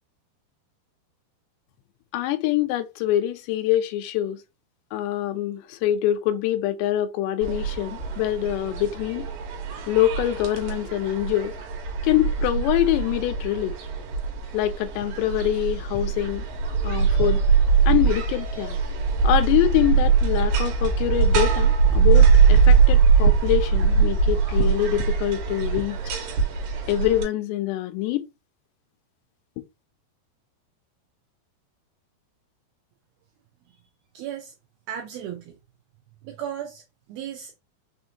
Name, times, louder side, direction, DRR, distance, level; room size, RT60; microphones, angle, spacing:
voice 1, 2.1-4.4 4.9-9.3 9.9-11.5 12.0-13.7 14.5-16.4 16.8-17.4 17.9-18.8 19.2-26.0 26.9-28.3, left 13 dB, 85° left, 2.8 m, -24 dB
sound 1, 7.4-27.2, right 5 dB, 65° right, 2.4 m, -21 dB
voice 2, 34.1-34.5 34.9-35.6 36.2-36.8 37.1-37.5, right 10 dB, 85° right, 2.2 m, -35 dB
6.3 x 2.7 x 2.8 m
omnidirectional pair, 5.0 m